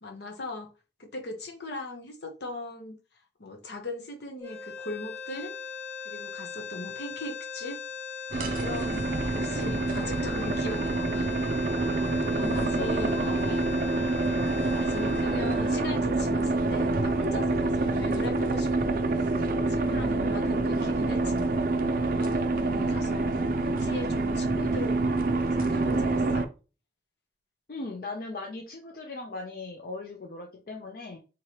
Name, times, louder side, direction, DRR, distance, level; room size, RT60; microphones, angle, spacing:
voice 1, 0.0-0.7 1.0-2.9 3.4-5.5 6.0-7.8 8.4-11.3 12.2-13.2 14.2-18.7 19.7-21.5 22.2-25.2 25.5-26.5, left 2 dB, 75° left, 3 dB, 0.9 m, -39 dB
sound 1, 4.4-16.6, left 5 dB, 10° left, 0.6 m, -39 dB
sound 2, 8.3-26.5, right 2 dB, 50° right, 0.4 m, -27 dB
voice 2, 12.4-13.7 27.7-31.2, left 3 dB, 55° left, 2 dB, 0.5 m, -38 dB
3.7 x 3.1 x 2.8 m, 0.33 s
head